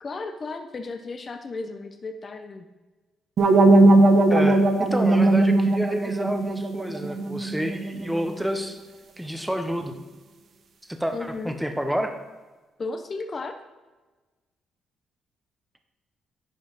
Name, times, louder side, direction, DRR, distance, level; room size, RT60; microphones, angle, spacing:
voice 1, 0.0-2.7 11.1-11.6 12.8-13.5, left 3 dB, 40° left, 6 dB, 0.7 m, -34 dB
sound 1, 3.4-8.3, right 2 dB, 55° right, 0.8 m, -19 dB
voice 2, 4.3-8.8 9.2-9.9 10.9-12.1, equal, 5° right, 5 dB, 0.8 m, -29 dB
11.0 x 4.8 x 4.0 m, 1.2 s
cardioid pair, 90°, 0 cm